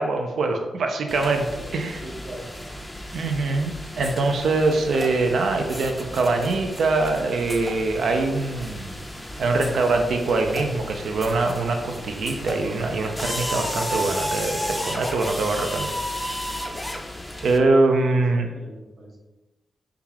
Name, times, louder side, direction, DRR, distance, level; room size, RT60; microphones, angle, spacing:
voice 1, 0.0-1.5 1.7-2.0 3.1-9.0 9.4-16.4 17.4-18.5, right 3 dB, 75° right, 4 dB, 0.4 m, -23 dB
sound 1, 1.1-17.6, left 1 dB, 10° left, 0.4 m, -33 dB
voice 2, 2.0-2.5 18.1-19.2, right 1 dB, 50° right, -1 dB, 0.8 m, -41 dB
3.6 x 2.3 x 2.9 m, 1.1 s
cardioid pair, 70°, 0 cm